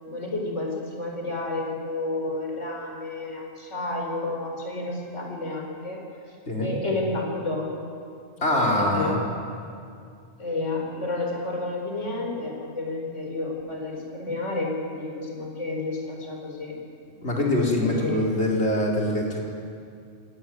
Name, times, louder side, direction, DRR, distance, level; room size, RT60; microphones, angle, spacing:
voice 1, 0.1-6.0 6.6-7.9 8.8-9.2 10.4-16.8 17.8-18.6, left 2 dB, 90° left, 0 dB, 5.0 m, -31 dB
voice 2, 8.4-9.2 17.2-19.4, left 1 dB, 65° left, -2 dB, 4.8 m, -23 dB
26.0 x 18.0 x 9.4 m, 2.4 s
omnidirectional pair, 1.2 m